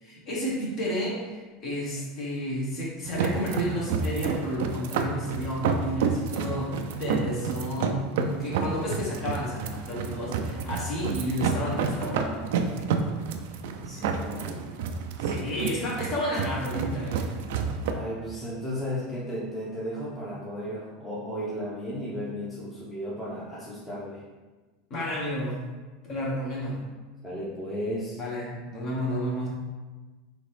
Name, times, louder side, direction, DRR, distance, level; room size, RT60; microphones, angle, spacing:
voice 1, 0.0-12.5 15.2-17.3 24.9-25.6 26.1-26.8 28.2-29.5, equal, 45° left, -5 dB, 1.5 m, -31 dB
sound 1, 3.0-17.9, right 5 dB, 75° right, 0.4 m, -30 dB
voice 2, 13.8-14.6 17.9-24.2 27.2-28.2, equal, 10° left, -8 dB, 0.9 m, -34 dB
3.9 x 2.9 x 3.3 m, 1.3 s
supercardioid pair, 120°, 0 cm